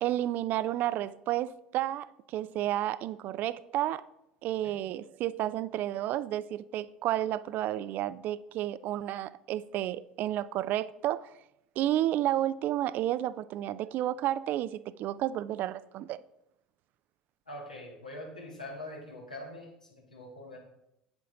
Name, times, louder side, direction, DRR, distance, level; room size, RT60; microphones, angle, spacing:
voice 1, 0.0-4.0 4.4-11.3 11.8-16.2, right 13 dB, 45° right, 0.3 m, -31 dB
voice 2, 17.5-20.6, left 1 dB, 85° left, 1.9 m, -43 dB
9.2 x 7.0 x 3.8 m
figure-of-eight pair, 65°, 4 cm